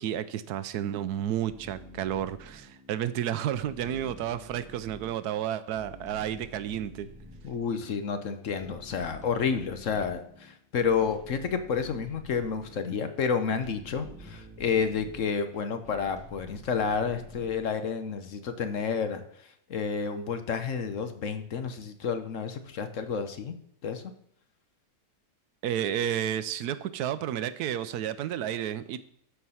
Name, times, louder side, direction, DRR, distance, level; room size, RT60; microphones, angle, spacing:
voice 1, 0.0-7.1 25.6-29.0, right 10 dB, 80° right, 14 dB, 1.1 m, -31 dB
sound 1, 1.5-17.7, equal, 5° right, 1.6 m, -49 dB
voice 2, 7.4-23.6 23.8-24.0, left 6 dB, 60° left, 9 dB, 1.1 m, -30 dB
13.0 x 4.6 x 5.6 m, 0.69 s
omnidirectional pair, 1.7 m